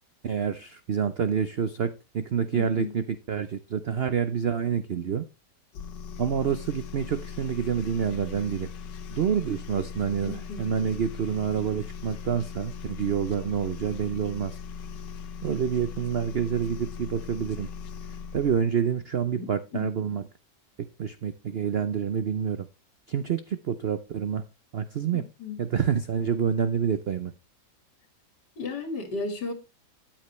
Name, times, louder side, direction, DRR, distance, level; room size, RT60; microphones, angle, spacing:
voice 1, 0.2-5.2 6.2-8.7 9.1-14.6 15.4-17.7 18.3-20.2 21.0-22.7 23.1-24.4 24.7-25.2 25.6-27.3, right 7 dB, 65° right, 12 dB, 0.6 m, -27 dB
voice 2, 2.5-2.9 10.3-10.7 19.3-19.9 25.1-25.6 28.6-29.5, left 4 dB, 70° left, 8 dB, 2.7 m, -34 dB
sound 1, 5.7-18.7, left 6 dB, 85° left, 1.6 m, -39 dB
13.0 x 9.0 x 3.1 m, 0.26 s
omnidirectional pair, 1.9 m